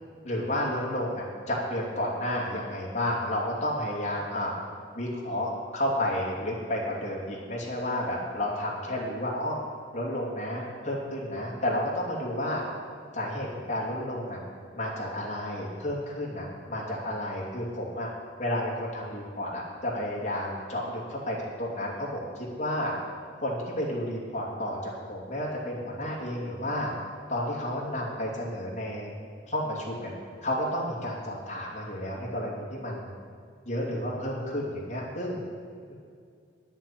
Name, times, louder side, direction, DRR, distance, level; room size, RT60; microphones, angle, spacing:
voice 1, 0.2-4.5 4.9-9.6 9.9-12.6 13.1-14.4 14.7-18.1 18.4-22.9 23.4-26.9 27.3-29.1 29.5-30.1 30.4-33.1 33.6-35.4, left 1 dB, 40° left, -5 dB, 2.7 m, -31 dB
10.5 x 7.3 x 8.8 m, 2.2 s
head